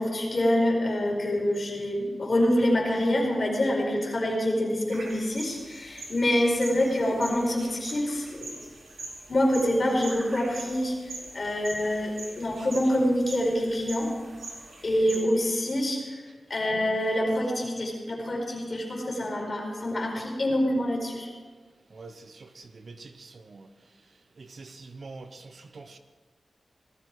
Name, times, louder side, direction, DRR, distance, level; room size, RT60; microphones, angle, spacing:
voice 1, 0.0-8.5 9.3-10.9 11.3-14.1 14.8-16.2 16.5-21.3, left 1 dB, 45° left, -1 dB, 4.7 m, -26 dB
sound 1, 4.9-15.2, right 2 dB, 75° right, 4.4 m, -43 dB
voice 2, 21.9-23.7 24.4-26.0, right 3 dB, 60° right, 8 dB, 1.0 m, -45 dB
19.0 x 13.0 x 4.9 m, 1.4 s
wide cardioid pair, 115°, 0 cm